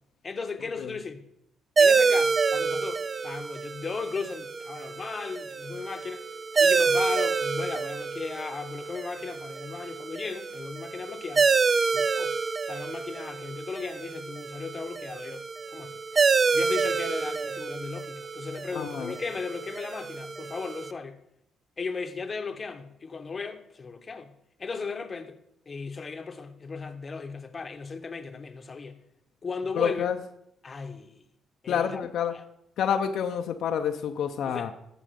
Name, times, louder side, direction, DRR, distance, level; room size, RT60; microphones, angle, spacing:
voice 1, 0.2-1.2 1.8-6.2 6.6-11.5 11.9-12.4 12.6-15.4 15.7-16.0 16.5-21.2 21.8-24.3 24.6-25.4 25.7-29.0 29.4-30.1 30.6-31.2 31.6-32.0 32.3-32.4 34.5-34.7, left 4 dB, 35° left, 0.9 m, -36 dB
sound 1, 1.8-20.9, right 4 dB, 35° right, 0.3 m, -27 dB
voice 2, 18.7-19.1 29.7-30.2 31.7-32.3 32.8-34.7, left 8 dB, 75° left, 0.6 m, -28 dB
14.0 x 4.9 x 5.1 m
cardioid pair, 90°, 0 cm